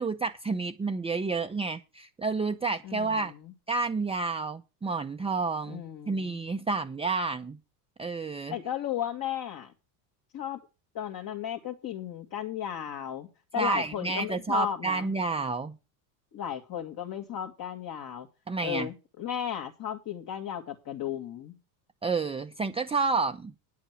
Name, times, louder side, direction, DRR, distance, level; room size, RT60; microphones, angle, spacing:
voice 1, 0.0-3.3 3.7-7.6 8.0-8.5 13.6-15.8 18.5-18.9 22.0-23.5, right 4 dB, 10° right, 0.7 m, -30 dB
voice 2, 2.8-3.5 5.7-6.4 8.5-9.7 10.3-10.6 10.9-13.3 13.5-15.1 16.3-18.3 18.6-21.5, left 10 dB, 40° left, 2.3 m, -35 dB
9.6 x 8.2 x 6.0 m
supercardioid pair, 100°, 50 cm